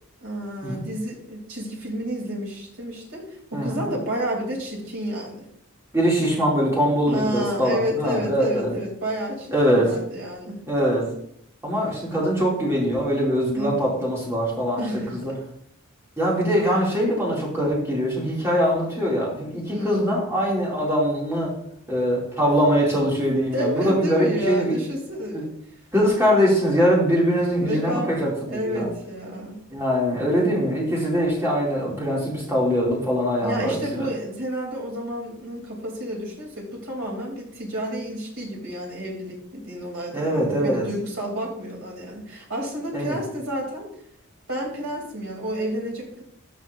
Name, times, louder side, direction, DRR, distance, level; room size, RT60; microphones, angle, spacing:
voice 1, 0.2-5.4 7.1-10.6 13.5-13.9 14.8-15.4 19.7-20.1 23.5-25.5 27.6-28.2 28.5-29.6 33.4-43.9 44.5-46.2, equal, 75° right, -2 dB, 3.1 m, -30 dB
voice 2, 3.5-3.9 5.9-8.7 9.5-9.9 10.7-11.0 11.6-14.8 15.1-15.3 16.2-21.5 21.9-24.8 25.3-25.4 25.9-28.9 29.7-34.1 40.1-40.8 42.9-43.2, equal, 15° right, -5 dB, 2.5 m, -22 dB
12.0 x 5.9 x 2.6 m, 0.72 s
head